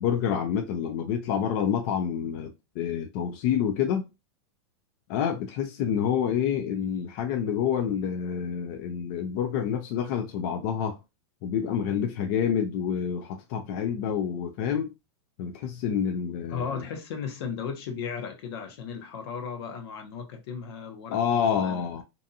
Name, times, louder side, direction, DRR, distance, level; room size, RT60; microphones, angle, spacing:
voice 1, 0.0-4.1 5.1-11.0 11.4-14.9 15.4-16.8 21.1-22.0, left 8 dB, 40° left, 0.4 m, -28 dB
voice 2, 16.5-22.0, left 6 dB, 65° left, 0.8 m, -36 dB
2.6 x 2.2 x 2.6 m
supercardioid pair, 150°, 14 cm